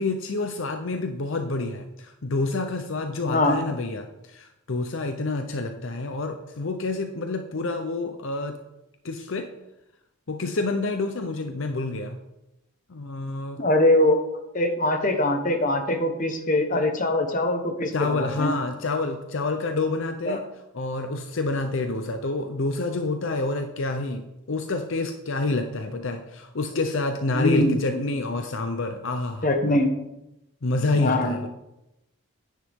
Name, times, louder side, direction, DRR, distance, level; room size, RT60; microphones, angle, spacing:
voice 1, 0.0-8.6 9.0-9.5 10.3-12.2 12.9-13.6 17.9-20.4 20.7-29.5 30.6-31.5, left 3 dB, 60° left, 6 dB, 0.7 m, -28 dB
voice 2, 3.3-3.6 13.6-14.2 14.5-18.5 20.3-20.4 27.3-28.0 29.4-29.9 30.9-31.4, left 1 dB, 35° left, 5 dB, 1.1 m, -22 dB
10.0 x 9.5 x 3.6 m, 0.91 s
head